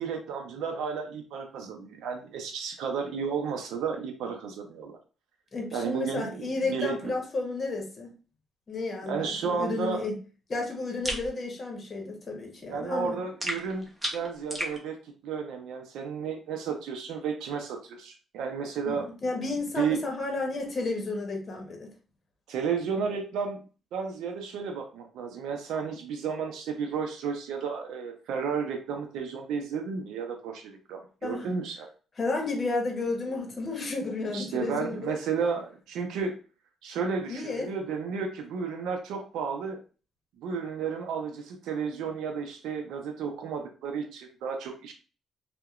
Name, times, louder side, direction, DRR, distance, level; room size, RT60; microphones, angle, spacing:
voice 1, 0.0-5.0 5.7-7.1 9.1-10.0 12.7-15.0 15.2-19.1 19.7-20.0 22.5-23.6 23.9-31.9 34.3-36.3 36.8-39.8 40.4-44.9, right 5 dB, 85° right, 4 dB, 0.5 m, -32 dB
voice 2, 5.5-8.1 8.7-10.2 10.5-13.2 18.9-21.9 31.2-31.5 32.2-35.2 37.3-37.7, left 3 dB, 35° left, 1 dB, 0.9 m, -32 dB
sound 1, 11.0-11.3 13.4-14.8, equal, 15° right, 0.8 m, -33 dB
2.7 x 2.1 x 2.4 m, 0.36 s
cardioid pair, 95°, 0 cm